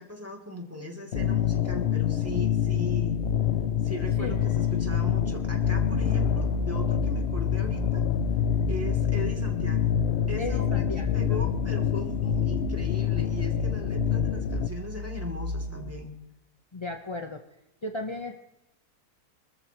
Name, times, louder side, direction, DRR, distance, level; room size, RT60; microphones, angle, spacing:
voice 1, 0.0-3.2 3.8-8.0 8.7-9.9 10.3-16.1, left 1 dB, 10° right, 1 dB, 2.7 m, -39 dB
sound 1, 1.1-14.7, left 9 dB, 90° left, 0.5 m, -27 dB
sound 2, 5.6-15.9, left 1 dB, 50° right, 7.1 m, -32 dB
voice 2, 10.4-11.4 16.7-17.4 17.8-18.4, left 2 dB, 30° left, 4 dB, 0.6 m, -35 dB
26.0 x 13.5 x 3.0 m, 0.86 s
omnidirectional pair, 1.9 m